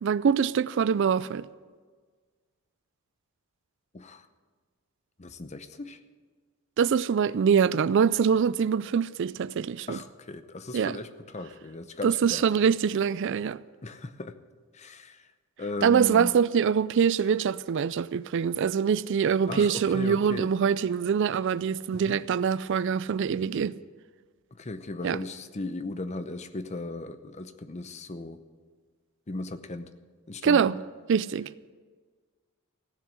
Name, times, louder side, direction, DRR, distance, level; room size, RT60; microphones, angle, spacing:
voice 1, 0.0-1.5 6.8-10.0 10.7-10.9 12.0-13.6 15.8-23.7 25.0-25.2 30.4-30.8 31.1-31.5, right 7 dB, 55° right, 0.3 m, -24 dB
voice 2, 3.9-4.3 5.2-6.0 9.9-12.4 13.8-14.4 14.7-15.3 15.6-16.4 19.5-20.5 21.9-22.2 24.5-28.4 29.3-29.9 30.3-30.8, left 2 dB, 30° left, 0.7 m, -37 dB
15.5 x 7.3 x 9.5 m
head